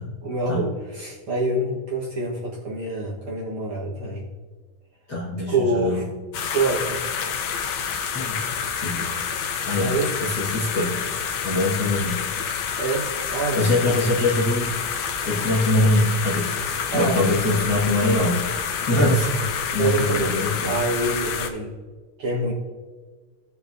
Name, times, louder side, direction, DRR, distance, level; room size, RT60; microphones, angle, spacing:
voice 1, 0.0-4.2 5.5-6.1 6.3-7.0 9.8-10.1 12.8-14.1 16.9-17.2 19.7-21.7 22.2-22.5, right 2 dB, 55° right, -5 dB, 2.0 m, -26 dB
voice 2, 5.1-6.0 8.1-8.4 8.8-9.1 9.3-9.9 10.2-11.1 11.4-12.2 13.5-14.7 15.2-16.6 16.9-18.6 18.9-20.8, left 2 dB, 40° left, -6 dB, 1.9 m, -23 dB
sound 1, 6.3-21.5, left 7 dB, 75° left, 2.1 m, -28 dB
18.0 x 6.9 x 2.7 m, 1.4 s
omnidirectional pair, 3.4 m